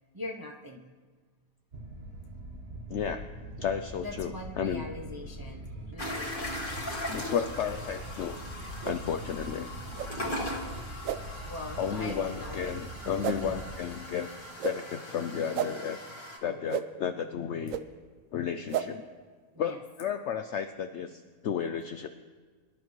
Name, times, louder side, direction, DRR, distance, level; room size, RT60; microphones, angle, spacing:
voice 1, 0.1-0.9 4.0-6.4 11.4-12.7 13.0-13.6 19.5-19.8, left 1 dB, 25° right, 1 dB, 0.5 m, -42 dB
sound 1, 1.7-13.7, right 1 dB, 45° right, 1.7 m, -43 dB
voice 2, 2.9-3.2 3.6-4.9 7.1-8.4 8.8-9.7 11.8-14.3 14.6-16.0 16.4-17.8 18.3-19.0 19.6-22.1, left 8 dB, 65° left, 8 dB, 0.7 m, -33 dB
sound 2, 6.0-16.4, left 1 dB, 35° left, 1.8 m, -39 dB
sound 3, 8.8-9.0 9.9-10.1 11.0-11.2 12.0-12.2 13.2-13.4 14.6-14.8 15.5-15.7 16.7-16.8 17.7-17.8 18.7-18.9, right 11 dB, 70° right, 1.0 m, -31 dB
23.0 x 11.5 x 3.1 m, 1.5 s
omnidirectional pair, 1.5 m